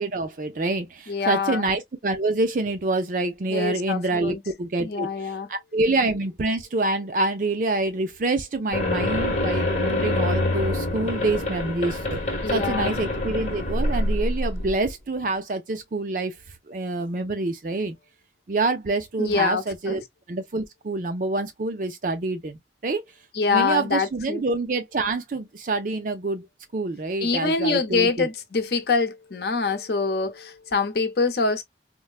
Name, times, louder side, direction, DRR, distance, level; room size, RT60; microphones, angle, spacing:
voice 1, 0.0-12.2 12.5-16.4 16.7-18.0 18.5-20.0 20.3-23.0 23.5-26.5 26.7-28.3, right 2 dB, 45° right, 0.5 m, -26 dB
voice 2, 1.1-1.6 3.5-4.4 4.8-5.5 12.4-12.9 19.2-20.0 23.3-24.4 27.2-31.6, left 4 dB, 60° left, 0.7 m, -25 dB
sound 1, 8.7-14.8, left 1 dB, 40° left, 1.2 m, -26 dB
4.5 x 2.1 x 2.3 m
head